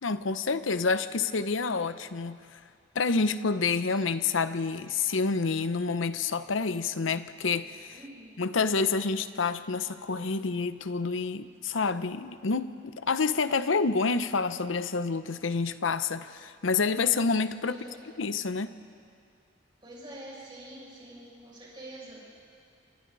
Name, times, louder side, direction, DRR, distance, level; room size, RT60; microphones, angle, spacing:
voice 1, 0.0-2.6 2.9-7.9 8.4-17.8 18.2-18.7, left 4 dB, 90° left, 12 dB, 0.8 m, -28 dB
voice 2, 7.9-8.4 17.7-18.1 19.8-22.2, right 1 dB, 25° right, -5 dB, 6.6 m, -46 dB
28.0 x 25.5 x 4.0 m, 2.3 s
head